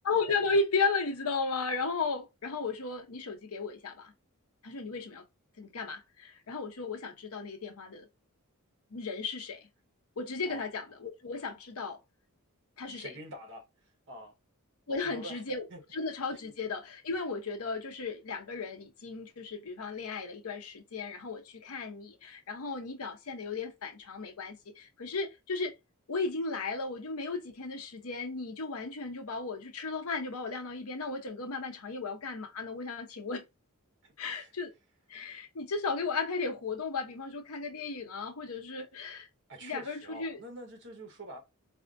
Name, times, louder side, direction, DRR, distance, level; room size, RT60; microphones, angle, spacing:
voice 1, 0.0-4.1 4.6-5.2 5.6-8.1 8.9-9.7 10.2-12.0 12.8-13.1 14.9-15.7 15.9-25.7 26.1-33.4 34.2-34.7 35.1-39.3 39.6-40.4, left 4 dB, 75° left, 0.8 m, -35 dB
voice 2, 12.9-14.3 14.9-15.4 15.7-15.8 16.3-16.6 34.0-34.5 39.5-41.4, right 1 dB, 55° right, 1.2 m, -46 dB
4.3 x 2.0 x 2.5 m
head